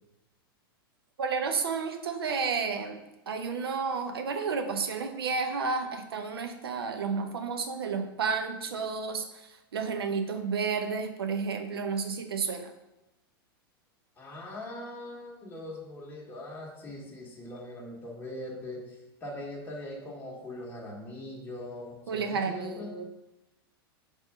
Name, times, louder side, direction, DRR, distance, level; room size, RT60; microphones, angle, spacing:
voice 1, 1.2-3.0 3.3-9.3 9.7-12.7 22.1-23.0, right 5 dB, 80° right, 6 dB, 0.8 m, -31 dB
voice 2, 14.2-23.0, left 1 dB, 15° left, -4 dB, 1.6 m, -41 dB
5.3 x 3.6 x 5.2 m, 0.94 s
hypercardioid pair, 100°, 12 cm